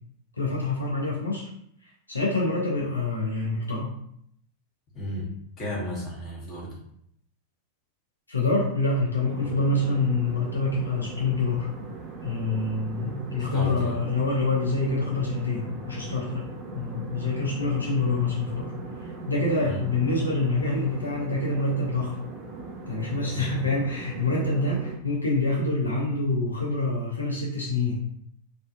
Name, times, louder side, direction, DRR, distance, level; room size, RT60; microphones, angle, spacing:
voice 1, 0.4-1.5 2.1-3.9 8.3-11.7 12.2-16.4 16.7-18.7 19.0-22.2 22.9-28.0, left 3 dB, 80° left, -4 dB, 0.5 m, -26 dB
voice 2, 4.9-6.8 13.4-14.0 19.6-19.8 23.3-23.7, left 1 dB, 30° left, -5 dB, 1.0 m, -34 dB
sound 1, 9.2-25.0, right 4 dB, 30° right, 0.4 m, -39 dB
2.4 x 2.2 x 2.4 m, 0.71 s
figure-of-eight pair, 90°, 0 cm